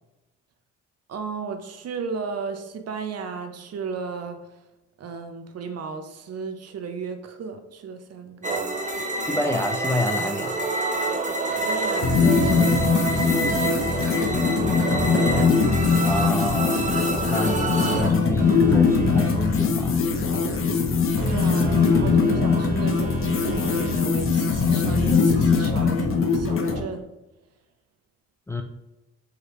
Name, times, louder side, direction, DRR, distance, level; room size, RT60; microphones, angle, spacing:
voice 1, 1.1-4.4 5.0-9.3 11.5-15.1 21.2-27.1, right 5 dB, 55° right, 7 dB, 0.7 m, -35 dB
sound 1, 8.4-18.1, right 3 dB, 25° right, 0.9 m, -27 dB
voice 2, 9.3-10.5 16.0-17.0 17.3-20.0 28.5-28.6, left 1 dB, 10° left, 3 dB, 0.4 m, -28 dB
sound 2, 12.0-26.8, left 5 dB, 45° left, 0.8 m, -21 dB
Telephone, 18.4-23.9, right 5 dB, 75° right, 1.1 m, -35 dB
4.9 x 3.2 x 3.1 m, 1.0 s
cardioid pair, 90°, 30 cm